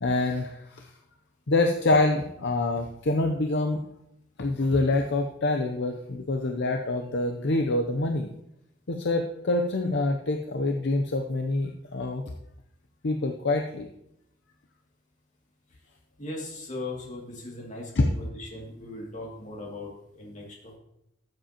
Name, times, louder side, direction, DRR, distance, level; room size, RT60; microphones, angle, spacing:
voice 1, 0.0-0.9 1.5-3.8 4.4-8.3 8.9-12.2 13.0-13.9 18.0-18.1, left 2 dB, 60° left, 4 dB, 0.7 m, -26 dB
voice 2, 16.2-20.8, left 2 dB, 40° left, -2 dB, 2.4 m, -39 dB
13.5 x 7.8 x 2.9 m, 0.80 s
head